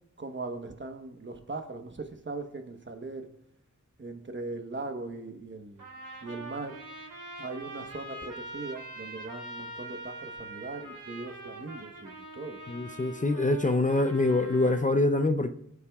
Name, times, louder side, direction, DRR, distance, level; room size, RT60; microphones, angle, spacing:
voice 1, 0.2-3.3 4.0-5.9 6.2-6.8 7.4-12.6, right 3 dB, 35° right, 1.1 m, -39 dB
Trumpet, 5.8-14.9, right 2 dB, 85° right, 2.6 m, -43 dB
voice 2, 12.7-15.5, left 2 dB, 25° left, 0.6 m, -25 dB
24.0 x 8.4 x 2.4 m
wide cardioid pair, 100°, 31 cm